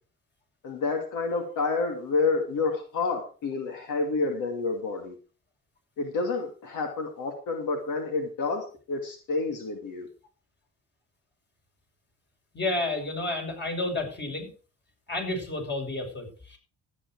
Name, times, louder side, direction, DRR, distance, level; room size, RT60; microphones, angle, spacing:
voice 1, 0.6-5.1 6.0-10.1, left 3 dB, 85° left, 4 dB, 2.5 m, -29 dB
voice 2, 12.5-14.5 15.1-16.6, left 2 dB, 35° left, 3 dB, 6.5 m, -31 dB
13.5 x 9.7 x 4.7 m, 0.37 s
cardioid pair, 90°, 30 cm